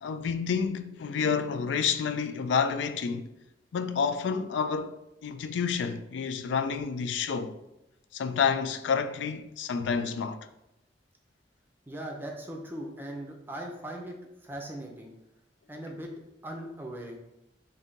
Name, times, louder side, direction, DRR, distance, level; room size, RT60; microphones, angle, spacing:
voice 1, 0.0-3.3 3.7-5.0 5.2-7.6 8.1-10.5, left 6 dB, 80° left, 0.3 m, -29 dB
voice 2, 11.9-14.2 14.4-15.1 15.7-16.1 16.4-17.2, right 1 dB, 10° right, 0.6 m, -39 dB
3.6 x 2.7 x 3.9 m
head